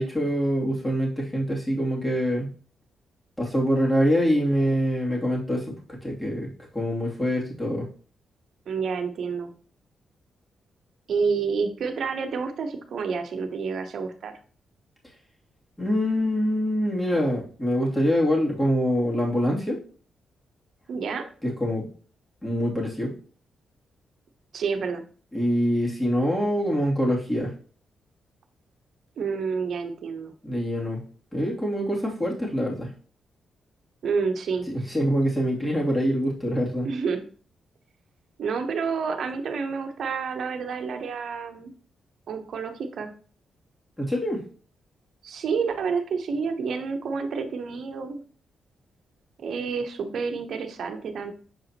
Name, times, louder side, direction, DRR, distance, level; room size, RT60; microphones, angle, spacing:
voice 1, 0.0-2.5 3.4-7.8 15.8-19.8 21.4-21.9 22.4-23.1 25.3-27.5 30.4-31.0 31.3-32.9 34.7-36.9 44.0-44.4, equal, 15° left, -3 dB, 2.7 m, -25 dB
voice 2, 8.7-9.5 11.1-14.3 20.9-21.3 24.5-25.0 29.2-30.3 34.0-34.7 36.8-37.2 38.4-41.7 42.3-43.1 45.2-48.2 49.4-51.3, right 5 dB, 70° right, 5 dB, 0.9 m, -29 dB
6.7 x 4.8 x 3.0 m, 0.42 s
supercardioid pair, 45°, 0 cm